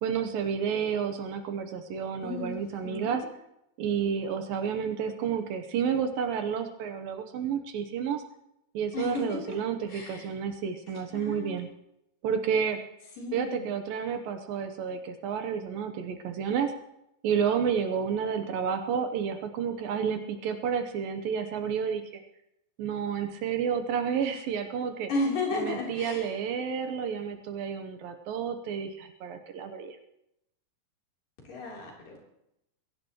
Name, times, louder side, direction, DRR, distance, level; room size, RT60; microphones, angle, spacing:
voice 1, 0.0-3.2 3.8-8.2 8.7-11.7 12.2-12.8 13.3-16.7 17.2-22.0 22.8-25.1 25.5-30.0, right 7 dB, 75° right, 6 dB, 2.6 m, -30 dB
voice 2, 2.2-3.2 8.9-9.4 9.9-10.3 11.1-11.6 13.2-13.7 25.1-26.3 31.5-32.2, left 2 dB, 60° left, -3 dB, 5.2 m, -33 dB
23.0 x 16.0 x 3.1 m, 0.84 s
omnidirectional pair, 4.5 m